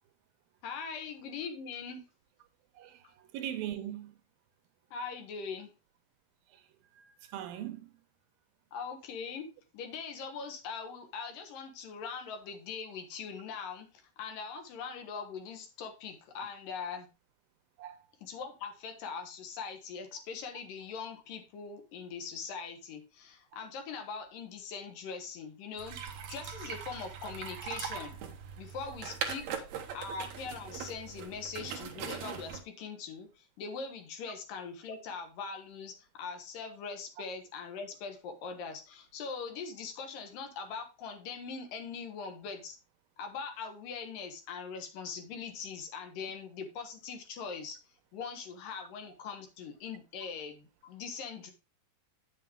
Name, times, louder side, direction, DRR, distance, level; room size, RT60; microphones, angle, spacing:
voice 1, 0.6-2.0 4.9-5.7 8.7-9.5 9.7-13.9 14.2-17.1 18.2-28.2 28.6-29.5 29.9-42.8 43.2-47.8 48.1-51.5, left 5 dB, 75° left, 3.0 m, -41 dB
voice 2, 3.3-4.1 6.9-7.9 17.8-18.0, right 11 dB, 85° right, 2.8 m, -39 dB
sound 1, 25.8-32.6, right 7 dB, 65° right, 2.1 m, -41 dB
8.4 x 7.2 x 3.4 m
omnidirectional pair, 4.1 m